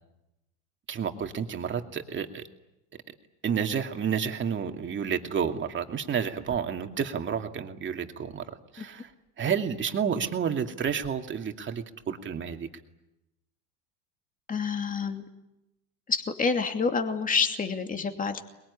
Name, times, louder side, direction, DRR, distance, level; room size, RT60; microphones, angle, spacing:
voice 1, 0.9-2.4 3.4-8.4 8.7-9.1 9.4-12.7, right 7 dB, 30° right, 5 dB, 2.5 m, -30 dB
voice 2, 14.5-15.2 16.1-18.4, left 5 dB, 20° left, 5 dB, 2.7 m, -28 dB
22.5 x 22.0 x 9.9 m, 0.91 s
supercardioid pair, 105°, 36 cm